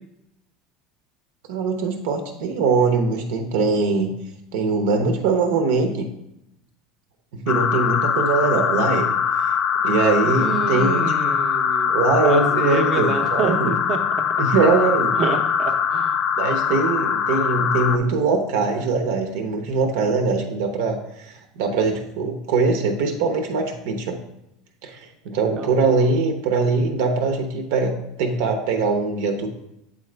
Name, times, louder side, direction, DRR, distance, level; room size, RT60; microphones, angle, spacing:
voice 1, 1.5-4.1 4.5-6.1 7.3-9.2 9.4-9.5 9.8-11.3 11.9-13.8 14.4-15.2 16.4-24.2 24.8-29.5, right 4 dB, 75° right, 5 dB, 0.8 m, -22 dB
sound 1, 7.5-18.0, left 7 dB, 35° left, 0.3 m, -22 dB
voice 2, 10.2-11.9 12.2-14.0 15.2-16.2 25.5-25.7, right 5 dB, 35° right, 5 dB, 0.7 m, -27 dB
8.2 x 3.8 x 3.3 m, 0.83 s
cardioid pair, 160°, 0 cm